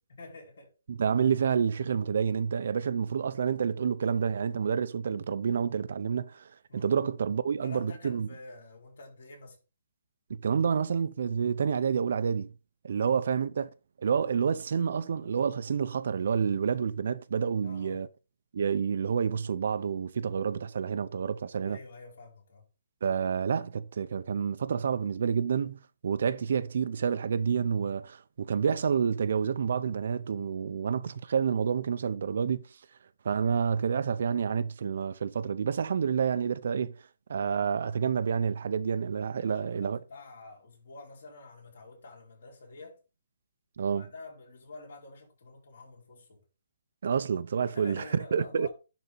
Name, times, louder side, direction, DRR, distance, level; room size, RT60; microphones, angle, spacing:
voice 1, 0.1-0.7 6.7-7.0 7.6-9.6 12.8-13.2 17.6-18.0 21.6-22.7 26.3-26.4 39.4-43.0 43.8-46.4 47.7-48.7, left 3 dB, 55° left, 5.0 m, -48 dB
voice 2, 0.9-8.3 10.3-12.5 12.8-13.7 14.0-18.1 18.5-21.8 23.0-32.7 33.2-36.9 37.3-40.0 43.8-44.1 47.0-48.7, right 7 dB, 55° right, 0.6 m, -29 dB
11.0 x 4.2 x 4.1 m
hypercardioid pair, 175°, 0 cm